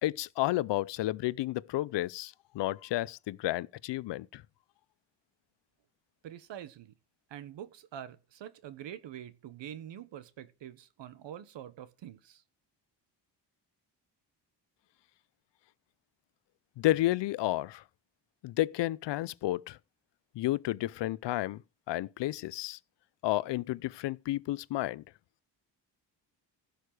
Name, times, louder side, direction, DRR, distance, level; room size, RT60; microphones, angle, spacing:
voice 1, 0.0-4.4 16.8-17.8 18.4-19.8 20.4-21.6 21.9-22.8 23.2-25.0, left 16 dB, 75° left, 0.6 m, -31 dB
voice 2, 6.2-6.9 7.3-12.4, right 10 dB, 80° right, 1.4 m, -45 dB
15.5 x 6.6 x 4.9 m
wide cardioid pair, 155°, 43 cm